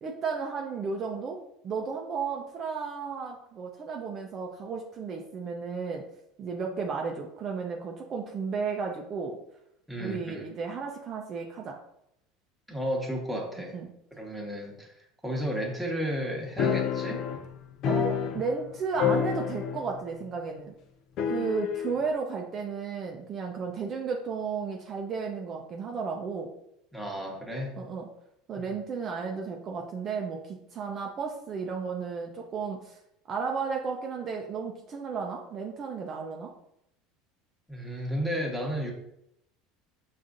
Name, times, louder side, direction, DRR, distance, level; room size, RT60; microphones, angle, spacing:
voice 1, 0.0-6.0 6.4-9.4 10.0-11.8 13.7-13.9 17.8-20.7 21.3-26.5 27.8-28.1 28.5-33.0 33.3-36.5, right 5 dB, 40° right, 1 dB, 0.5 m, -33 dB
voice 2, 9.9-10.5 12.7-13.8 14.1-14.9 15.2-17.2 26.9-27.8 28.6-28.7 37.7-38.9, equal, ahead, -2 dB, 1.1 m, -33 dB
sound 1, 16.6-18.7 19.0-20.0 20.2-20.3 21.2-22.0, left 7 dB, 55° left, 0.4 m, -28 dB
5.6 x 2.5 x 2.5 m, 0.79 s
supercardioid pair, 105°, 0 cm